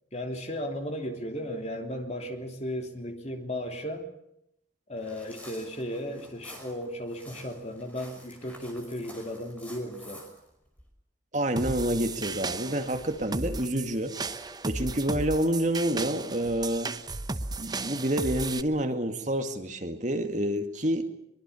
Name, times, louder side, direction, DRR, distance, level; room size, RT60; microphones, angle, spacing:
voice 1, 0.1-4.1 4.9-10.2, equal, 35° left, 4 dB, 3.2 m, -35 dB
sound 1, 5.0-10.8, equal, 5° left, 5.3 m, -49 dB
voice 2, 11.3-16.9 17.6-21.0, right 1 dB, 40° right, 7 dB, 2.1 m, -28 dB
sound 2, 11.6-18.6, right 3 dB, 20° right, 0.9 m, -35 dB
23.5 x 23.0 x 7.1 m, 0.77 s
head